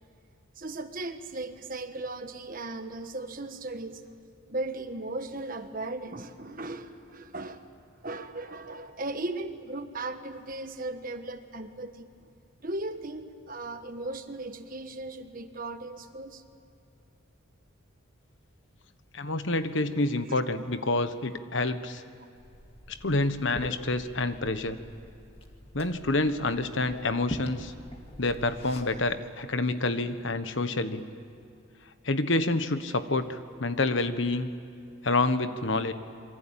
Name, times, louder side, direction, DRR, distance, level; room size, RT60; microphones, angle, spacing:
voice 1, 0.6-4.0 4.5-7.6 8.0-12.1 12.6-16.4 20.3-20.4, right 2 dB, 40° right, 8 dB, 1.4 m, -37 dB
voice 2, 19.1-22.0 22.9-24.8 25.7-27.7 28.2-31.0 32.0-34.5 35.0-35.9, left 2 dB, 60° left, 10 dB, 1.3 m, -28 dB
Liquid, 22.4-29.1, equal, 25° left, 2.1 m, -44 dB
27.0 x 24.0 x 9.0 m, 2.6 s
head